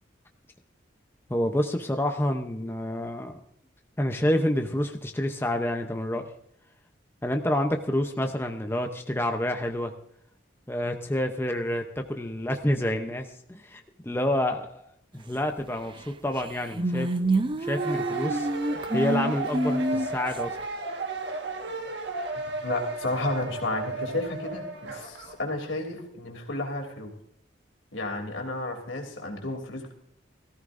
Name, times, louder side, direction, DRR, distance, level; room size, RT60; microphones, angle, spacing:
voice 1, 1.3-3.4 4.0-6.2 7.2-9.9 10.7-14.8 15.1-18.5 18.9-20.6, left 1 dB, 10° left, 5 dB, 0.7 m, -28 dB
sound 1, 16.0-16.1 16.4-20.4, right 1 dB, 25° right, 0.5 m, -27 dB
sound 2, 17.7-25.4, right 3 dB, 65° right, 1.5 m, -34 dB
voice 2, 22.6-27.1 27.9-29.9, left 2 dB, 90° left, 2 dB, 3.0 m, -32 dB
17.5 x 14.5 x 2.6 m, 0.72 s
head